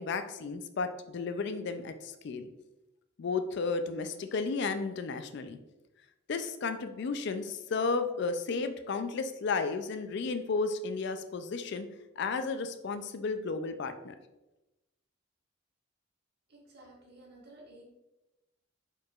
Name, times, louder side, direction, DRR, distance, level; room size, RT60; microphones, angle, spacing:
voice 1, 0.0-2.5 3.2-5.6 6.3-11.9 12.2-14.2, left 4 dB, 60° left, 9 dB, 0.4 m, -33 dB
voice 2, 16.5-17.8, right 1 dB, 55° right, -3 dB, 1.4 m, -54 dB
4.7 x 4.5 x 2.4 m, 0.99 s
head